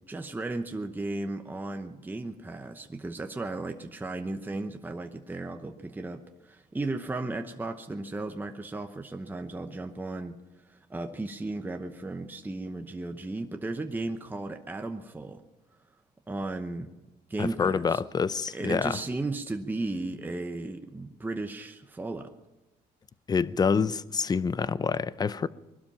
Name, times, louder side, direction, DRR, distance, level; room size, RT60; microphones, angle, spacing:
voice 1, 0.1-10.4 10.6-15.4 16.3-16.9 17.3-18.0 18.5-22.3, right 2 dB, 10° right, 0.9 m, -35 dB
voice 2, 17.4-19.0 23.3-25.5, left 5 dB, 25° left, 0.5 m, -27 dB
20.5 x 12.0 x 5.6 m
cardioid pair, 110°, 17 cm